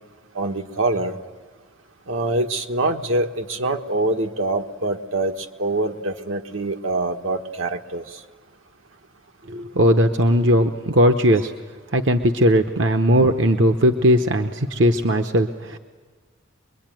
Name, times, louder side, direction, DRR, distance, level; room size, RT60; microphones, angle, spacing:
voice 1, 0.3-1.2 2.1-5.3 5.6-8.0, right 2 dB, 85° right, 4 dB, 1.5 m, -24 dB
voice 2, 9.5-11.5 11.9-15.8, equal, 65° right, 6 dB, 1.0 m, -18 dB
25.0 x 22.5 x 9.1 m, 1.5 s
head